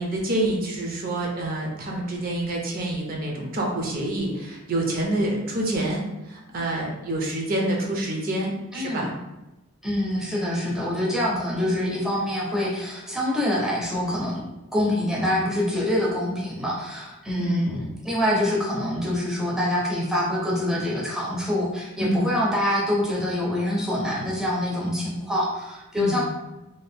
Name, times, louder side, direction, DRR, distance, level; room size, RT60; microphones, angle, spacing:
voice 1, 0.0-9.1 17.4-17.7 22.0-22.2 25.9-26.2, right 1 dB, 45° right, -1 dB, 0.5 m, -27 dB
voice 2, 8.7-9.1 9.8-14.4 14.7-26.2, left 1 dB, 5° right, -5 dB, 0.5 m, -25 dB
2.7 x 2.4 x 3.4 m, 1.0 s
head